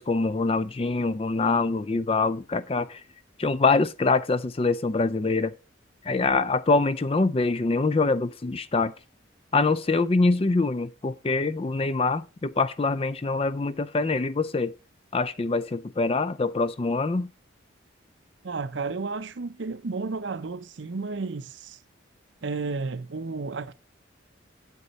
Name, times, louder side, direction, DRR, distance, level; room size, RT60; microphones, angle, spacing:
voice 1, 0.0-3.0 3.4-5.5 6.0-8.9 9.5-14.7 15.1-17.3, left 3 dB, 30° left, 0.4 m, -24 dB
voice 2, 18.4-21.8 22.4-23.7, right 4 dB, 70° right, 0.6 m, -32 dB
8.3 x 8.2 x 4.1 m
head